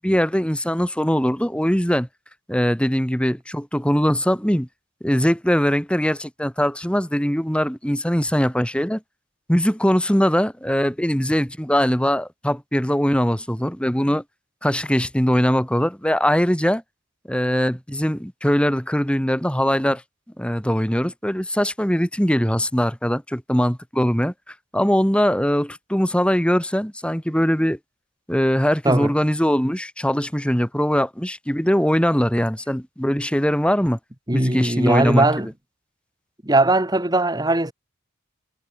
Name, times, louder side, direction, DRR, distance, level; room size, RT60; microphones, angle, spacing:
voice 1, 0.0-2.1 2.5-4.7 5.0-9.0 9.5-14.2 14.6-16.8 17.3-20.0 20.4-27.8 28.3-34.0 34.3-35.3, equal, 5° left, 2.1 m, -21 dB
voice 2, 34.3-35.5 36.4-37.7, right 2 dB, 20° right, 1.7 m, -19 dB
head